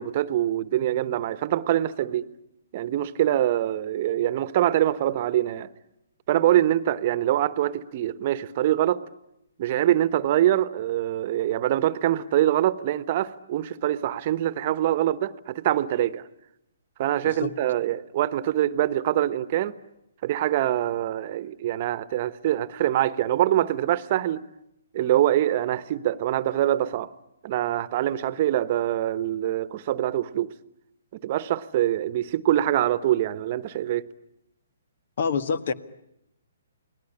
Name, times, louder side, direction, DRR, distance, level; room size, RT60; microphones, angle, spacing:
voice 1, 0.0-2.3 2.7-5.7 6.3-9.0 9.6-16.3 17.0-19.7 20.2-24.4 24.9-27.1 27.4-30.5 31.1-34.0, right 12 dB, 40° right, 1.1 m, -24 dB
voice 2, 35.2-35.7, left 5 dB, 60° left, 1.6 m, -26 dB
29.0 x 20.0 x 10.0 m
hypercardioid pair, 140°, 0 cm